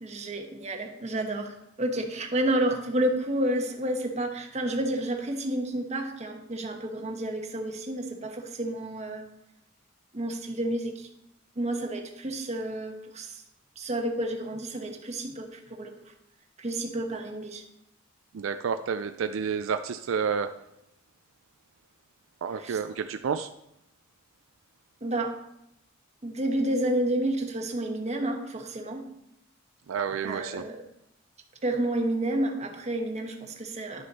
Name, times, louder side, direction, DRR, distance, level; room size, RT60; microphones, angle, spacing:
voice 1, 0.0-9.2 10.1-11.1 11.6-13.4 13.8-16.0 16.6-17.6 22.6-22.8 25.0-25.4 26.2-29.0 30.2-30.8 31.6-34.0, right 1 dB, 35° right, 4 dB, 1.1 m, -30 dB
voice 2, 18.3-20.5 22.4-23.5 29.9-30.6, right 6 dB, 75° right, 9 dB, 0.4 m, -30 dB
11.0 x 6.4 x 4.1 m, 0.79 s
head